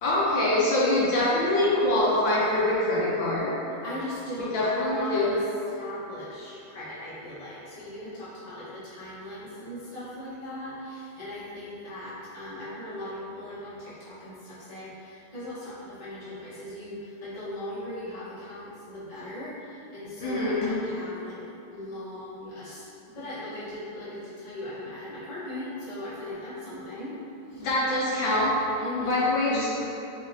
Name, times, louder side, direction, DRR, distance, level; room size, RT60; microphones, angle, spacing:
voice 1, 0.0-3.5 4.5-5.3 20.2-20.7 27.6-28.5 29.0-29.7, left 1 dB, 70° left, -7 dB, 1.3 m, -24 dB
voice 2, 3.8-5.4 5.7-21.4 21.7-27.2 27.5-27.7 28.8-29.3, left 1 dB, 30° left, -12 dB, 0.7 m, -38 dB
5.1 x 2.8 x 2.6 m, 2.9 s
omnidirectional pair, 2.3 m